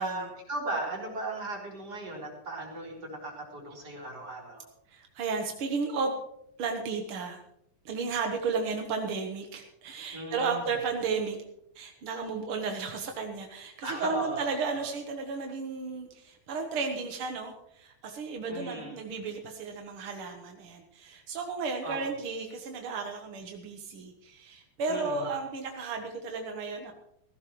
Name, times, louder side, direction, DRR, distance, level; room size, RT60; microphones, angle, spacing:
voice 1, 0.0-4.7 10.1-10.7 13.8-14.9 18.5-19.1 21.8-22.1 24.9-25.3, right 2 dB, 25° right, -3 dB, 4.4 m, -37 dB
voice 2, 4.9-6.1 6.6-7.4 7.8-11.4 11.7-26.9, right 4 dB, 65° right, 3 dB, 1.3 m, -33 dB
17.5 x 15.5 x 3.1 m, 0.76 s
omnidirectional pair, 4.1 m